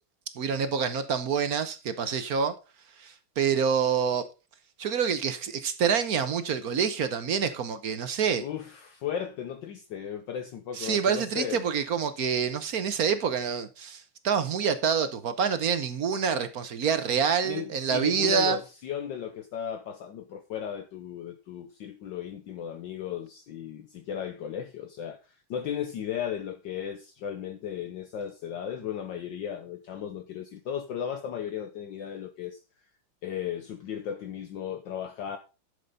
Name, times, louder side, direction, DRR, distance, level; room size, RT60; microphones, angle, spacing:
voice 1, 0.4-2.6 3.0-4.2 4.8-8.4 10.8-18.6, right 6 dB, 55° right, 1.1 m, -27 dB
voice 2, 8.4-11.7 17.4-17.7 17.9-32.6 33.2-35.4, left 9 dB, 65° left, 1.4 m, -35 dB
11.5 x 6.8 x 4.0 m
omnidirectional pair, 2.3 m